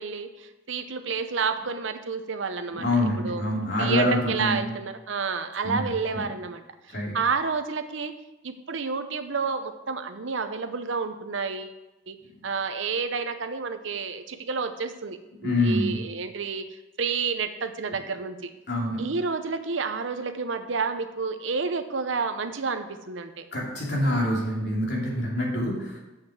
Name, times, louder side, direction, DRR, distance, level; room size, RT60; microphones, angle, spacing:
voice 1, 0.0-2.9 3.2-3.5 3.8-6.6 6.9-8.1 8.4-11.8 12.1-12.2 12.4-16.6 17.0-18.5 19.0-23.5, right 5 dB, 75° right, 9 dB, 0.7 m, -30 dB
voice 2, 2.7-4.6 5.6-5.8 6.1-6.2 6.9-7.1 15.4-15.9 18.7-19.0 23.5-26.0, left 1 dB, 60° left, -3 dB, 2.7 m, -25 dB
7.3 x 5.7 x 7.1 m, 1.0 s
head